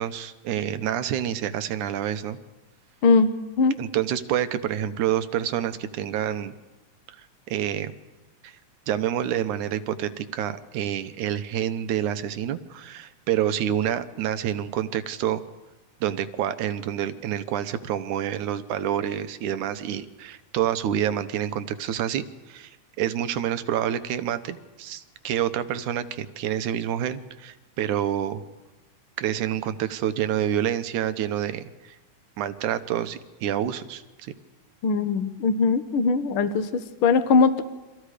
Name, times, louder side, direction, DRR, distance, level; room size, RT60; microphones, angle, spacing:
voice 1, 0.0-2.4 3.8-6.5 7.2-7.9 8.4-8.5 8.9-15.4 16.0-28.4 29.2-32.0 32.4-34.3, right 10 dB, 85° right, 11 dB, 2.5 m, -28 dB
voice 2, 3.0-3.8 34.8-37.6, left 4 dB, 55° left, 10 dB, 1.8 m, -21 dB
29.5 x 24.5 x 5.0 m, 1.2 s
omnidirectional pair, 3.4 m